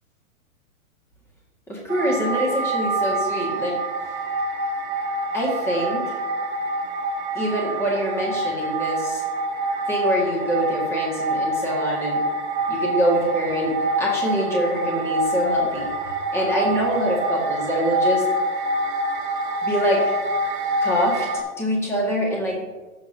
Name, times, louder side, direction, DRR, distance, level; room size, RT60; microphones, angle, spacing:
voice 1, 1.7-3.8 5.3-6.1 7.3-9.2 9.9-12.2 12.7-15.9 16.3-18.2 19.6-20.0 20.8-22.6, right 1 dB, 5° left, -4 dB, 2.0 m, -24 dB
sound 1, 1.9-21.4, right 1 dB, 25° right, 1.7 m, -26 dB
15.0 x 7.3 x 2.9 m, 1.2 s
hypercardioid pair, 145°, 43 cm